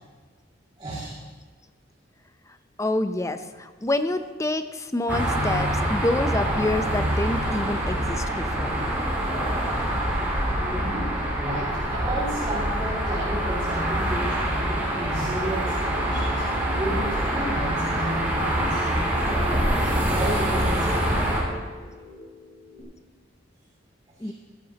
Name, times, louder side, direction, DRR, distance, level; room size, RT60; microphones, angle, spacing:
voice 1, 0.8-1.2 10.6-16.5 16.8-21.2 24.2-24.3, right 1 dB, 25° right, -9 dB, 2.4 m, -33 dB
voice 2, 2.8-8.8 24.2-24.3, left 1 dB, 15° left, 9 dB, 0.6 m, -27 dB
sound 1, 5.1-21.4, right 1 dB, 10° right, 2.9 m, -25 dB
sound 2, 15.8-22.8, left 1 dB, 80° left, 4.2 m, -42 dB
16.0 x 13.0 x 2.9 m, 1.5 s
head